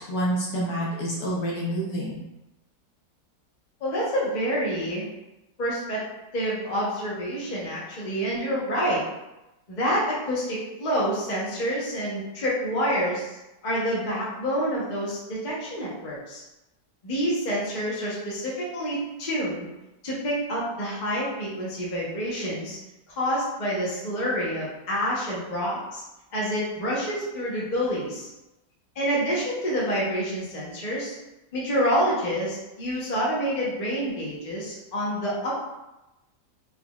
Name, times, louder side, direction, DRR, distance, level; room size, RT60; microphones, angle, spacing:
voice 1, 0.1-2.2, right 1 dB, 65° left, -5 dB, 1.3 m, -28 dB
voice 2, 3.8-5.1 5.6-6.0 6.3-9.0 9.7-13.4 13.6-16.4 17.0-19.7 20.0-22.8 23.1-26.0 26.3-28.3 28.9-31.1 31.5-35.6, equal, 35° left, -6 dB, 0.9 m, -27 dB
3.9 x 3.3 x 2.3 m, 0.97 s
omnidirectional pair, 1.8 m